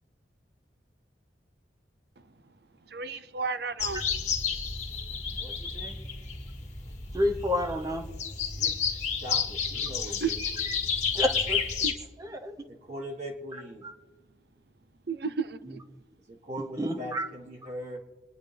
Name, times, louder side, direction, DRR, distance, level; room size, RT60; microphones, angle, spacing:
voice 1, 2.9-4.0 10.2-10.3 11.8-11.9 15.1-15.8, right 5 dB, 60° right, 0.7 m, -32 dB
sound 1, 3.8-11.9, left 6 dB, 40° left, 1.7 m, -31 dB
voice 2, 5.4-6.0 8.6-10.4 12.7-13.8 16.3-18.0, equal, 40° right, 1.7 m, -40 dB
voice 3, 7.1-8.1 11.1-11.7 12.2-12.6 16.8-17.3, left 1 dB, 20° right, 1.0 m, -29 dB
25.5 x 10.0 x 3.4 m
head